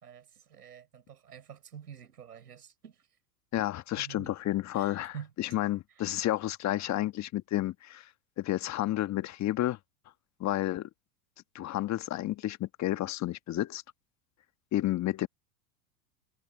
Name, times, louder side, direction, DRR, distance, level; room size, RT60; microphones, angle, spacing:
voice 1, 0.0-3.0 3.9-4.3 4.7-5.3, right 8 dB, 85° right, 5.3 m, -47 dB
voice 2, 3.5-8.1 8.4-9.8 10.4-10.9 11.5-13.8 14.7-15.3, left 14 dB, 35° left, 1.6 m, -31 dB
hypercardioid pair, 90°, 45 cm